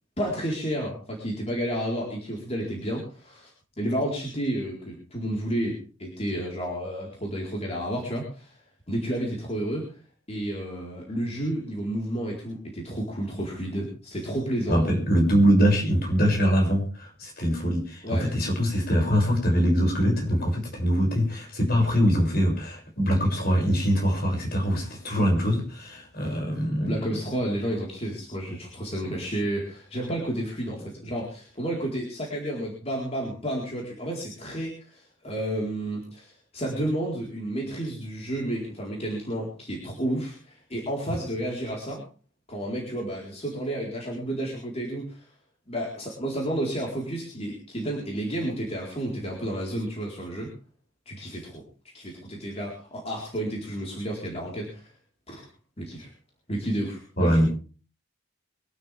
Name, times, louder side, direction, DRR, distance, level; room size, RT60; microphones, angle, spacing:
voice 1, 0.2-3.5 3.8-8.6 8.9-9.8 10.3-14.8 18.0-18.3 26.8-42.0 42.5-45.3 45.7-50.5 51.1-51.6 51.9-54.9 55.3-55.4 55.8-56.1 56.5-57.4, right 1 dB, 35° left, -2 dB, 4.3 m, -31 dB
voice 2, 14.7-27.1 41.1-41.2 57.2-57.5, equal, 50° left, 1 dB, 6.7 m, -23 dB
24.0 x 12.5 x 3.5 m, 0.37 s
head